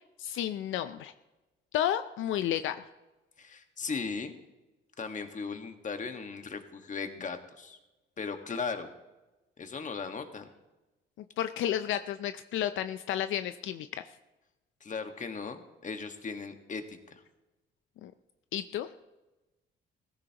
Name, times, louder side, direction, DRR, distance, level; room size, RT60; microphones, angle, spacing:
voice 1, 0.2-1.1 1.7-2.8 11.4-13.9 18.0-18.1 18.5-18.9, left 11 dB, 80° left, 11 dB, 0.5 m, -31 dB
voice 2, 3.4-4.4 5.0-7.8 8.2-8.9 9.6-10.5 14.8-17.2, left 5 dB, 40° left, 6 dB, 1.6 m, -37 dB
18.0 x 15.0 x 2.9 m, 1.1 s
cardioid pair, 90°, 20 cm